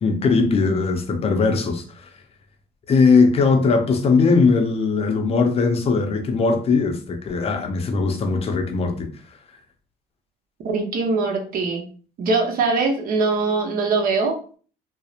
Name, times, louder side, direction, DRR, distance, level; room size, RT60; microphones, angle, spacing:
voice 1, 0.0-1.8 2.9-9.1, left 4 dB, 35° left, 0.5 m, -19 dB
voice 2, 10.6-11.9 12.2-14.4, right 3 dB, 60° right, 0.7 m, -22 dB
2.7 x 2.0 x 2.4 m
cardioid pair, 110°, 17 cm